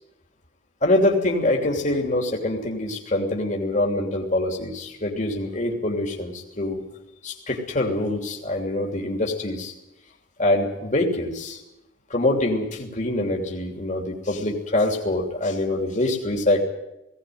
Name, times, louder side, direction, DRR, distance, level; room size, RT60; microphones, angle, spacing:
voice 1, 0.8-6.8 7.2-9.7 10.4-11.6 12.1-16.6, left 1 dB, 40° left, 1 dB, 3.1 m, -24 dB
19.0 x 18.0 x 9.4 m, 0.91 s
head